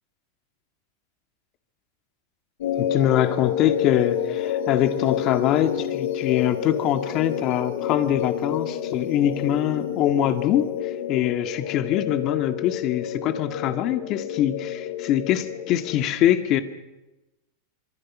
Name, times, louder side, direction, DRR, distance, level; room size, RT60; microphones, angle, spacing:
sound 1, 2.6-16.1, left 9 dB, 85° left, 6.9 m, -29 dB
voice 1, 2.8-10.7 11.1-16.6, left 11 dB, 35° left, 9 dB, 1.8 m, -23 dB
25.5 x 24.5 x 6.1 m, 0.99 s
supercardioid pair, 160°, 0 cm